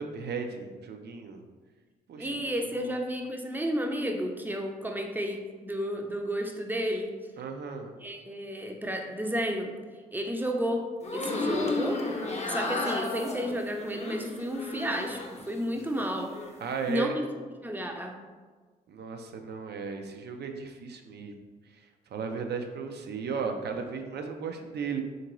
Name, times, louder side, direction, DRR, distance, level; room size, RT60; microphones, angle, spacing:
voice 1, 0.0-1.4 2.1-2.3 2.7-2.9 7.4-7.9 16.6-17.2 18.9-25.0, right 5 dB, 60° right, 5 dB, 0.5 m, -35 dB
voice 2, 2.2-7.2 8.0-9.8 10.1-12.1 12.4-16.4 16.9-17.3 17.6-18.2, equal, 10° right, 3 dB, 0.5 m, -32 dB
sound 1, 11.0-15.4 15.8-16.5, left 2 dB, 35° left, 0.6 m, -33 dB
3.6 x 2.6 x 3.0 m, 1.4 s
hypercardioid pair, 40°, 20 cm